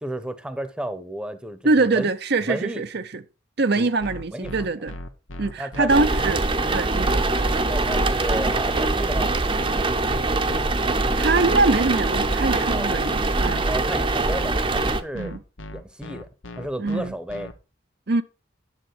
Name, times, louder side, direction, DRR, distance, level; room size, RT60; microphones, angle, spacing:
voice 1, 0.0-2.1 2.4-2.8 3.7-3.9 4.3-4.7 5.6-5.9 7.7-9.3 12.7-12.9 13.6-15.4 15.7-16.3 16.5-17.5, right 1 dB, 5° right, 1.0 m, -32 dB
voice 2, 1.6-3.2 3.6-4.9 5.4-7.3 11.1-13.6 15.1-15.4 16.8-17.1 18.1-18.2, right 3 dB, 55° right, 0.7 m, -23 dB
sound 1, 4.0-17.5, left 1 dB, 90° left, 1.3 m, -37 dB
sound 2, 5.9-15.0, right 2 dB, 25° right, 0.8 m, -23 dB
10.5 x 7.4 x 4.7 m
head